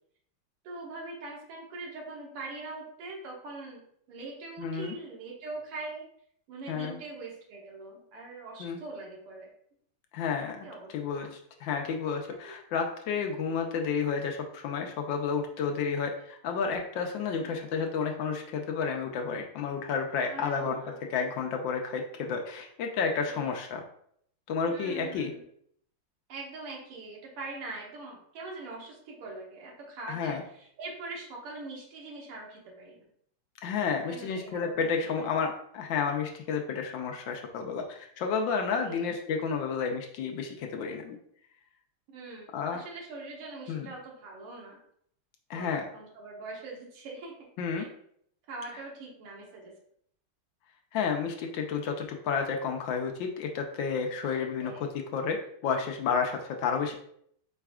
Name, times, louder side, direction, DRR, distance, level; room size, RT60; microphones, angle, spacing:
voice 1, 0.6-6.1 6.5-9.5 10.6-11.3 12.5-12.6 17.2-17.7 20.3-21.1 23.3-23.5 24.7-25.4 26.3-33.1 34.1-35.3 38.8-39.1 42.1-44.8 45.5-47.3 47.7-47.9 48.5-49.7 54.4-54.9, right 3 dB, 85° right, -2 dB, 2.1 m, -42 dB
voice 2, 4.6-5.0 6.7-7.0 8.6-8.8 10.1-10.7 10.9-20.8 21.1-23.8 24.5-25.3 30.1-30.4 33.6-41.2 42.5-42.8 43.7-43.9 45.5-45.9 47.6-47.9 50.9-55.4 55.6-56.9, left 5 dB, 70° left, 3 dB, 1.2 m, -31 dB
4.8 x 4.4 x 2.3 m, 0.67 s
omnidirectional pair, 2.4 m